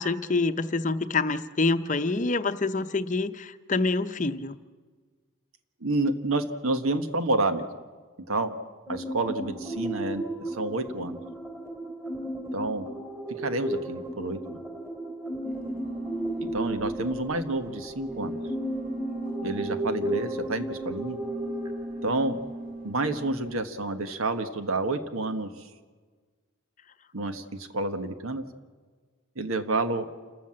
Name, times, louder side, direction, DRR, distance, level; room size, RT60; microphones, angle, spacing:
voice 1, 0.0-4.6, left 3 dB, 35° left, 11 dB, 0.7 m, -26 dB
voice 2, 5.8-7.7 8.3-8.5 8.9-11.2 12.5-12.9 13.4-14.6 16.4-18.4 19.4-21.2 22.0-22.4 22.8-25.5 27.1-28.4 29.3-30.1, right 2 dB, 85° right, 9 dB, 1.4 m, -29 dB
sound 1, 8.9-23.3, right 1 dB, 10° right, 3.2 m, -35 dB
sound 2, 15.4-23.6, right 1 dB, 45° right, 3.6 m, -38 dB
28.5 x 13.5 x 7.6 m, 1.5 s
head